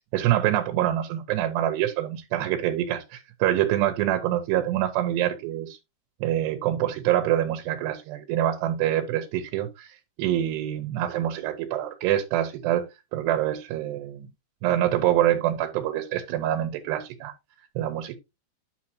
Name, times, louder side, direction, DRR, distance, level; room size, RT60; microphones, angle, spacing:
voice 1, 0.1-5.8 6.2-9.9 10.2-14.3 14.6-17.3 17.8-18.2, right 12 dB, 85° right, 3.0 m, -25 dB
9.7 x 6.6 x 2.8 m
omnidirectional pair, 4.8 m